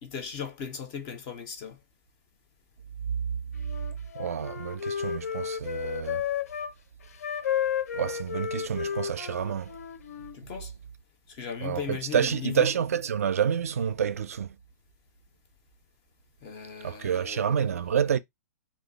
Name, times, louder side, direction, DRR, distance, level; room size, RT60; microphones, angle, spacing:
voice 1, 0.0-1.8 10.3-10.7 11.3-12.8 16.4-18.1, left 7 dB, 15° left, 0.3 m, -38 dB
Wind instrument woodwind instrument, 3.6-6.7 7.2-10.4, left 8 dB, 70° left, 0.5 m, -32 dB
voice 2, 4.1-6.3 7.9-9.7 11.6-14.5 16.8-18.2, right 8 dB, 65° right, 0.4 m, -28 dB
2.9 x 2.3 x 3.8 m
hypercardioid pair, 175°, 9 cm